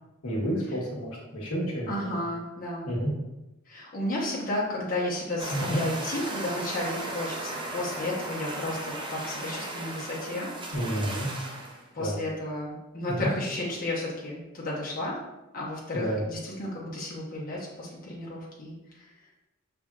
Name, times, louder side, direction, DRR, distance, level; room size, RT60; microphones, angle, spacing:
voice 1, 0.2-2.2 2.9-3.1 5.5-5.8 10.7-11.3 12.0-12.2 13.2-13.3 15.9-16.2, equal, 85° left, -3 dB, 1.1 m, -30 dB
voice 2, 1.9-2.9 3.7-10.8 11.9-15.2 15.5-19.1, left 1 dB, 40° left, -5 dB, 1.1 m, -33 dB
sound 1, 5.4-11.8, right 2 dB, 20° right, 0.6 m, -36 dB
5.7 x 3.4 x 2.4 m, 0.99 s
head